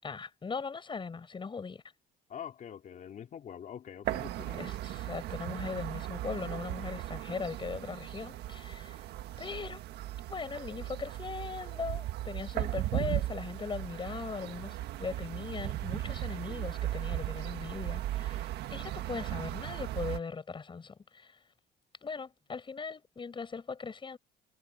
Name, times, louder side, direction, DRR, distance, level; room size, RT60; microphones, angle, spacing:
voice 1, 0.0-1.8 4.6-9.0 9.4-9.8 10.3-21.4 22.0-24.2, left 5 dB, 30° left, 7.3 m, -39 dB
voice 2, 2.3-4.7, left 8 dB, 50° left, 3.9 m, -45 dB
sound 1, 4.0-20.2, right 14 dB, 80° right, 1.6 m, -37 dB
cardioid pair, 110°, 17 cm